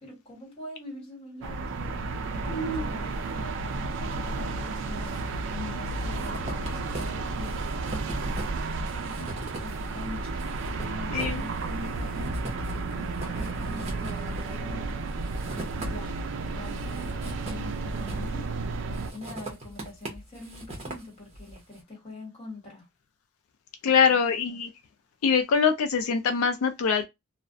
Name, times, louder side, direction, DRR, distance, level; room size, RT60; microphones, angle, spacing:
voice 1, 0.0-5.1 5.5-8.5 8.9-9.2 9.6-10.4 10.7-12.4 12.7-14.9 15.8-18.5 19.1-22.9 23.8-24.2 24.5-24.6, left 2 dB, 30° left, 1.3 m, -44 dB
sound 1, 1.4-19.1, right 3 dB, 55° right, 0.3 m, -32 dB
voice 2, 2.5-2.9 11.1-11.5 23.8-24.7 25.2-27.0, left 6 dB, 90° left, 0.4 m, -24 dB
sound 2, 4.7-5.3 5.5-16.3 16.7-18.5 18.9-21.6, right 1 dB, 30° right, 0.7 m, -39 dB
2.4 x 2.0 x 2.5 m
head